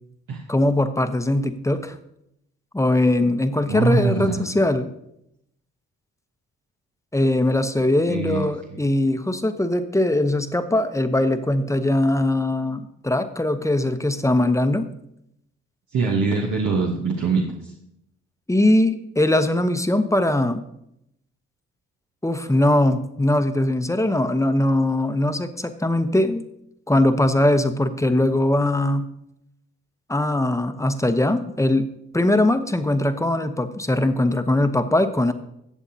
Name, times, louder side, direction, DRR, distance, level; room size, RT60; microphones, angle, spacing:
voice 1, 0.5-1.9 2.7-4.9 7.1-14.9 18.5-20.6 22.2-26.4 26.9-29.1 30.1-35.3, left 1 dB, 10° left, 9 dB, 0.9 m, -21 dB
voice 2, 3.7-4.5 8.1-8.8 15.9-17.7, right 4 dB, 70° right, -1 dB, 1.2 m, -23 dB
17.5 x 7.1 x 2.8 m, 0.78 s
supercardioid pair, 50°, 31 cm